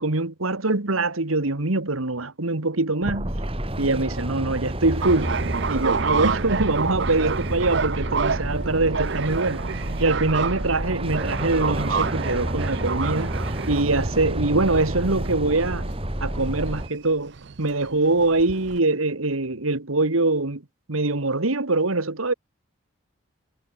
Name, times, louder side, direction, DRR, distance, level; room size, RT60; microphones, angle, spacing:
voice 1, 0.0-3.3 3.8-5.3 5.7-9.6 10.0-15.9 16.2-20.6 20.9-22.3, right 2 dB, 90° right, 2.0 m, -23 dB
sound 1, 3.0-16.9, right 1 dB, 25° right, 2.6 m, -30 dB
sound 2, 5.0-18.8, right 5 dB, 55° right, 0.6 m, -29 dB
head